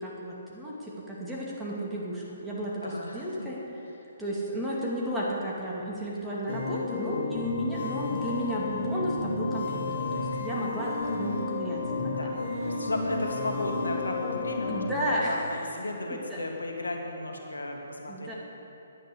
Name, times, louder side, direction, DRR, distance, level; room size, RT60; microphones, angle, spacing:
voice 1, 0.0-3.6 4.2-9.9 10.1-12.3 14.7-15.5 16.1-16.4 18.1-18.3, equal, 5° right, -6 dB, 2.6 m, -33 dB
voice 2, 2.8-3.5 12.2-12.4 12.6-18.3, left 2 dB, 85° left, 1 dB, 1.9 m, -34 dB
sound 1, 6.5-14.9, left 3 dB, 60° left, 2.7 m, -32 dB
11.0 x 9.4 x 8.4 m, 2.9 s
figure-of-eight pair, 135°, 0 cm